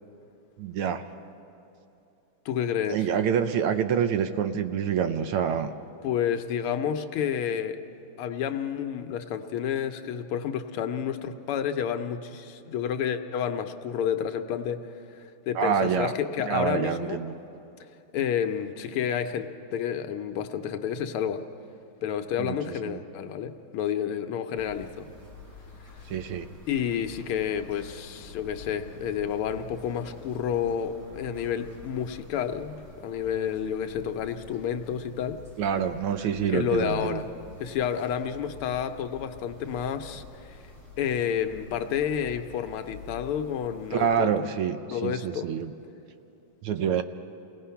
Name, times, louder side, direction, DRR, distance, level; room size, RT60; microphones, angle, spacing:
voice 1, 0.6-1.0 2.9-5.7 15.5-16.1 16.4-17.3 22.4-22.6 22.8-23.0 26.1-26.4 35.6-37.2 43.9-45.7 46.6-47.0, right 8 dB, 85° right, 9 dB, 1.6 m, -26 dB
voice 2, 2.5-3.0 6.0-7.8 8.2-14.8 15.2-17.2 18.1-21.4 22.0-25.1 26.7-35.4 36.5-37.3 37.6-40.6 41.0-44.5 44.9-45.5, left 8 dB, 85° left, 7 dB, 1.7 m, -30 dB
sound 1, 24.5-44.2, left 3 dB, 35° right, 4.2 m, -48 dB
29.0 x 18.0 x 5.7 m, 2.9 s
omnidirectional pair, 2.4 m